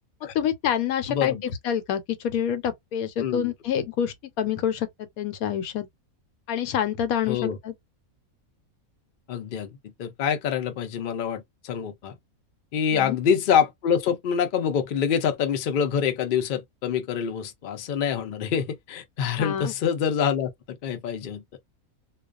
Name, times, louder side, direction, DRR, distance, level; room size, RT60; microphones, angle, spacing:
voice 1, 0.3-1.4 1.6-5.9 6.5-7.7 12.9-13.2 19.4-19.7, left 9 dB, 85° left, 1.1 m, -27 dB
voice 2, 1.1-1.4 3.2-3.5 7.3-7.6 9.3-12.2 12.7-21.4, left 7 dB, 65° left, 0.5 m, -26 dB
2.3 x 2.2 x 2.3 m
omnidirectional pair, 1.5 m